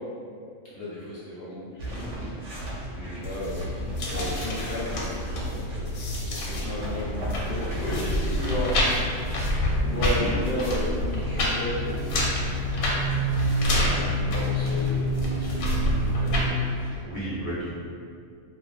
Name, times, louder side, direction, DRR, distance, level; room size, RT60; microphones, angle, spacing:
voice 1, 0.7-12.3 13.4-16.5, left 1 dB, 65° left, -9 dB, 0.6 m, -34 dB
sound 1, 1.8-17.0, right 1 dB, 70° right, 0.8 m, -38 dB
sound 2, 3.2-16.5, left 1 dB, 85° left, 1.0 m, -27 dB
voice 2, 17.0-17.7, right 1 dB, 30° right, -12 dB, 0.4 m, -34 dB
2.5 x 2.3 x 2.4 m, 2.3 s
omnidirectional pair, 1.4 m